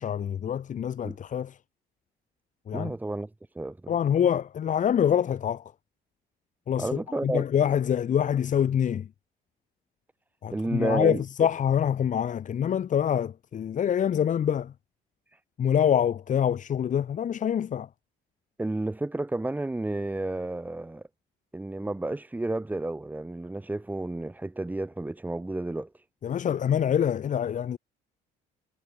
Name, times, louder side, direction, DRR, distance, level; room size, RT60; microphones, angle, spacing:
voice 1, 0.0-1.6 2.7-2.9 3.9-5.6 6.7-9.1 10.4-14.7 15.6-17.9 26.2-27.8, left 9 dB, 50° left, 3.9 m, -25 dB
voice 2, 2.7-3.3 3.6-3.9 6.8-7.4 10.5-11.2 18.6-21.0 21.5-26.0, right 2 dB, 10° right, 1.9 m, -31 dB
cardioid pair, 110°, 17 cm